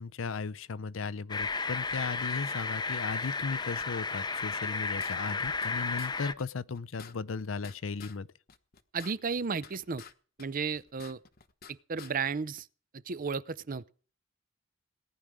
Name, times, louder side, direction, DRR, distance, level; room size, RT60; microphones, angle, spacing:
voice 1, 0.0-8.3, left 4 dB, 75° left, 0.6 m, -36 dB
sound 1, 1.3-6.3, left 4 dB, 20° left, 0.7 m, -33 dB
sound 2, 4.5-5.7 6.0-6.1 6.4-6.5 6.7-8.2 8.5-10.1 10.4-11.7 12.0-12.1, left 7 dB, 50° left, 1.2 m, -50 dB
voice 2, 8.9-10.0 10.4-11.2 11.7-12.7 13.1-13.9, right 5 dB, 45° right, 0.6 m, -33 dB
18.5 x 10.5 x 4.9 m
head